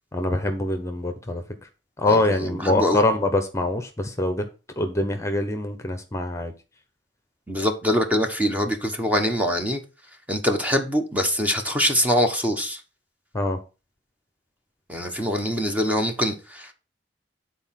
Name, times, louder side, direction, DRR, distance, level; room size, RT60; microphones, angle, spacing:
voice 1, 0.1-1.7 2.0-4.4 4.8-6.5 13.3-13.6, left 2 dB, 15° left, 1.0 m, -24 dB
voice 2, 2.1-3.0 7.5-9.8 10.3-12.8 14.9-16.7, equal, 10° right, 1.1 m, -24 dB
9.7 x 4.4 x 5.8 m
head